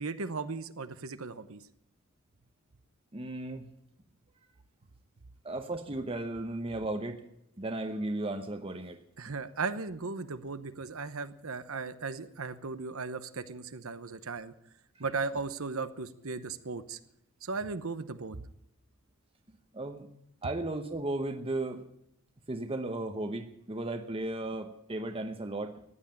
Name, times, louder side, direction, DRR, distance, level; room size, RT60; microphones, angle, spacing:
voice 1, 0.0-1.6 9.2-14.5 15.0-17.0 17.4-18.4, right 4 dB, 70° right, 12 dB, 0.9 m, -36 dB
voice 2, 3.1-3.7 5.4-7.2 7.6-9.0 15.0-15.1 19.7-20.1 20.4-21.8 22.5-25.8, right 2 dB, 25° right, 6 dB, 0.9 m, -35 dB
15.0 x 9.9 x 8.7 m, 0.78 s
head